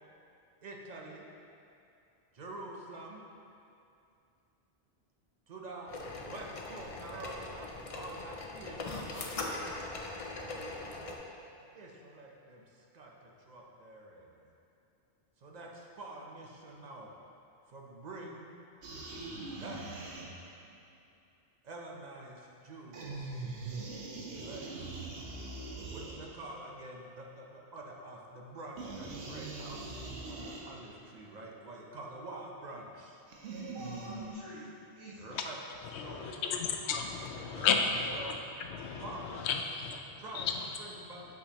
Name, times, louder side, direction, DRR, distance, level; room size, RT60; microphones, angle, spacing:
voice 1, 0.6-1.3 2.3-3.2 5.5-5.9 6.2-9.7 10.9-11.2 11.6-14.5 15.4-17.1 17.7-18.5 19.5-19.8 21.6-23.4 24.3-24.7 25.9-29.9 30.2-33.2 35.2-35.6 35.9-36.4 37.5-37.8 38.1-38.4 39.0-39.5 40.2-41.3, right 2 dB, 45° right, -1 dB, 0.7 m, -47 dB
sound 1, 5.9-11.1, left 2 dB, 45° left, 0.5 m, -41 dB
sound 2, 18.8-20.7 22.9-26.6 28.8-31.0 33.3-34.3, right 3 dB, 85° right, 1.0 m, -42 dB
voice 2, 33.5-35.4 36.0-36.8, equal, 30° right, -11 dB, 1.2 m, -49 dB
voice 3, 35.9-38.4 38.6-40.6, left 6 dB, 85° left, 4 dB, 0.8 m, -33 dB
6.1 x 5.7 x 2.9 m, 2.6 s
omnidirectional pair, 1.1 m